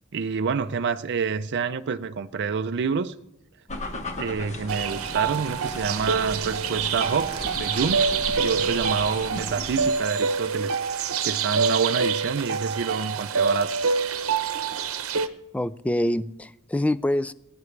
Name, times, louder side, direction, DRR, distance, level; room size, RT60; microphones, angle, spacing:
voice 1, 0.1-3.1 4.2-8.1 8.4-13.8, right 5 dB, 55° right, 0.5 m, -27 dB
sound 1, 3.7-10.0, left 1 dB, 35° left, 1.4 m, -36 dB
sound 2, 4.7-15.3, right 5 dB, 80° right, 0.9 m, -26 dB
voice 2, 15.5-17.3, left 1 dB, 5° left, 0.3 m, -25 dB
21.5 x 9.6 x 3.3 m
head